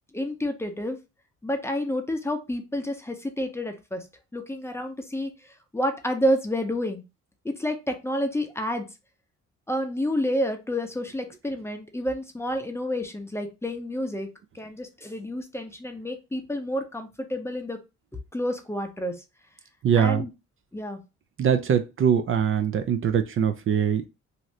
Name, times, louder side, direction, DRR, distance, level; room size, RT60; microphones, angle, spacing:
voice 1, 0.1-1.0 1.4-4.1 4.3-7.0 7.4-8.9 9.7-14.3 14.5-17.8 18.1-19.2 20.0-20.3 20.7-21.0, equal, 10° left, 5 dB, 0.6 m, -29 dB
voice 2, 19.8-20.2 21.4-24.1, right 8 dB, 45° right, 7 dB, 0.4 m, -22 dB
2.7 x 2.5 x 3.1 m, 0.26 s
cardioid pair, 90°, 30 cm